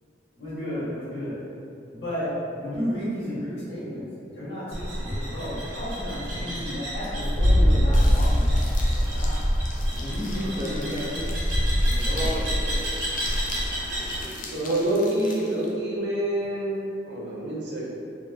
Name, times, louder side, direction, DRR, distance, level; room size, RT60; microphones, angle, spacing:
voice 1, 0.3-1.4 1.9-4.1 4.3-9.4 9.9-11.4 11.8-12.5, equal, 70° left, -11 dB, 1.4 m, -33 dB
sound 1, 4.7-14.2, equal, 85° right, 1.1 m, -24 dB
sound 2, 7.9-15.7, left 3 dB, 45° left, 0.4 m, -42 dB
voice 2, 10.4-11.1 12.1-12.9 13.4-14.6, right 1 dB, 30° right, -3 dB, 0.4 m, -36 dB
voice 3, 14.5-17.9, right 1 dB, 70° right, -5 dB, 0.7 m, -27 dB
3.4 x 2.1 x 2.8 m, 2.6 s
head